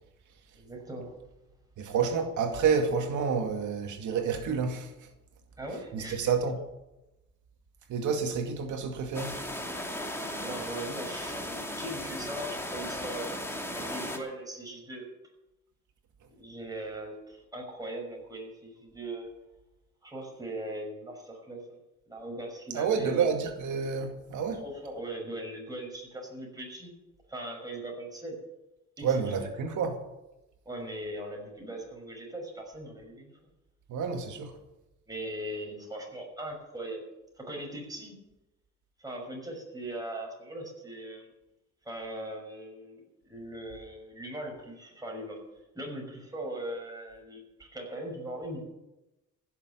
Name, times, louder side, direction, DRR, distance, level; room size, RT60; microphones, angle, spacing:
voice 1, 0.5-1.2 5.6-6.3 10.3-15.1 16.4-19.3 20.0-21.8 22.1-23.3 24.5-26.9 27.3-28.4 29.0-29.5 30.6-33.3 35.1-37.0 37.4-38.2 39.0-41.3 41.8-45.4 45.7-48.6, right 1 dB, 10° right, 6.1 m, -40 dB
voice 2, 1.8-4.9 5.9-6.6 7.9-9.4 22.7-24.6 29.0-30.0 33.9-34.6, right 6 dB, 80° right, 2.2 m, -29 dB
sound 1, 9.1-14.2, left 1 dB, 10° left, 2.7 m, -36 dB
15.5 x 7.4 x 9.3 m
cardioid pair, 90°, 30 cm